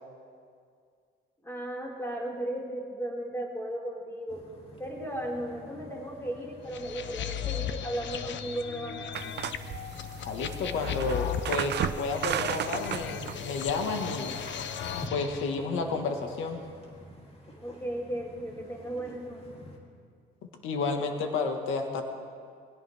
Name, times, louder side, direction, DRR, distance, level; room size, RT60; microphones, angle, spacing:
voice 1, 1.4-4.4 4.8-9.3 17.6-19.5, right 1 dB, 15° left, -3 dB, 5.1 m, -36 dB
sound 1, 4.3-19.8, equal, 30° left, 3.1 m, -49 dB
sound 2, 6.7-15.5, left 9 dB, 70° left, 0.9 m, -36 dB
sound 3, 9.1-15.1, right 10 dB, 60° right, 0.6 m, -35 dB
voice 2, 10.2-14.4 15.1-16.6 20.6-22.0, left 4 dB, 90° left, 4 dB, 1.7 m, -31 dB
23.0 x 17.5 x 3.5 m, 2.2 s
cardioid pair, 90°, 20 cm